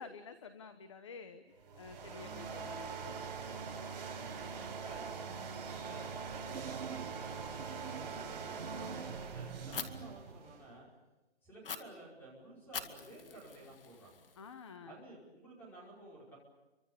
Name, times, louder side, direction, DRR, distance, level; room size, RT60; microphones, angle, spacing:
voice 1, 0.0-1.4 1.8-3.2 14.4-15.0, left 5 dB, 25° left, 10 dB, 1.0 m, -50 dB
sound 1, 1.6-10.7, right 5 dB, 45° right, 4.6 m, -43 dB
voice 2, 4.2-5.1 5.6-10.9 11.4-14.2 14.8-16.4, right 2 dB, 5° left, -4 dB, 5.3 m, -54 dB
sound 2, 6.5-10.3, right 7 dB, 70° right, 1.0 m, -48 dB
Fire, 9.7-9.9 11.6-11.8 12.7-14.7, left 6 dB, 55° left, 2.2 m, -44 dB
30.0 x 25.0 x 7.0 m, 1.1 s
hypercardioid pair, 180°, 33 cm